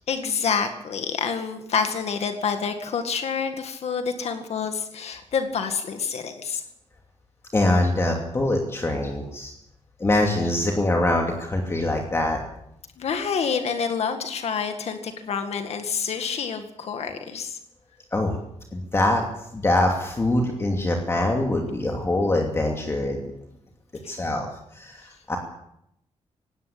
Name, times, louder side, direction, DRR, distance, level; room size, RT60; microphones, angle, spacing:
voice 1, 0.1-6.6 13.0-17.6 24.0-24.1, left 6 dB, 65° left, 7 dB, 2.0 m, -28 dB
voice 2, 7.5-9.5 10.0-12.4 18.1-18.4 18.7-19.2 19.5-23.2 24.1-25.4, left 1 dB, 20° left, 2 dB, 2.7 m, -23 dB
19.5 x 17.5 x 8.6 m, 0.76 s
wide cardioid pair, 165°, 12 cm